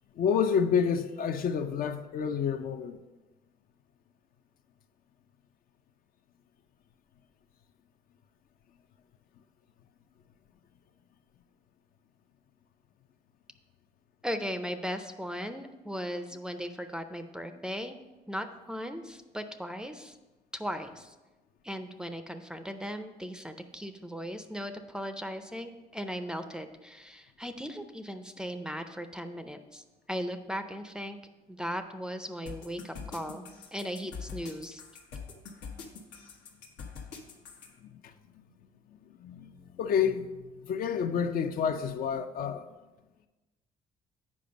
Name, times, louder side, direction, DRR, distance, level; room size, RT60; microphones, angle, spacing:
voice 1, 0.2-3.0 37.8-38.4 39.2-42.7, left 7 dB, 60° left, 0.6 m, -29 dB
voice 2, 14.2-18.0 18.3-20.2 20.5-21.1 21.6-31.2 31.5-33.5 33.7-34.8, equal, 5° right, 0.5 m, -37 dB
sound 1, 32.5-37.7, left 5 dB, 85° left, 1.2 m, -43 dB
8.6 x 5.1 x 5.2 m
cardioid pair, 110°, 17 cm